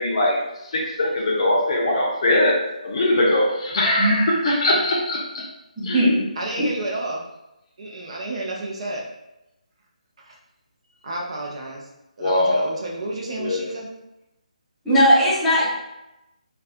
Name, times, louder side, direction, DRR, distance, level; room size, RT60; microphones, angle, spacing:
voice 1, 0.0-5.5 5.8-6.1 12.2-12.7 13.4-13.7, left 1 dB, 45° left, -3 dB, 0.6 m, -21 dB
voice 2, 5.8-6.2 6.6-6.7 14.8-15.7, equal, 5° left, -11 dB, 1.0 m, -18 dB
voice 3, 6.4-7.2 7.8-9.0 10.2-10.4 11.0-11.9 12.2-13.9, right 2 dB, 45° right, -2 dB, 0.5 m, -30 dB
2.5 x 2.2 x 2.5 m, 0.91 s
figure-of-eight pair, 155°, 4 cm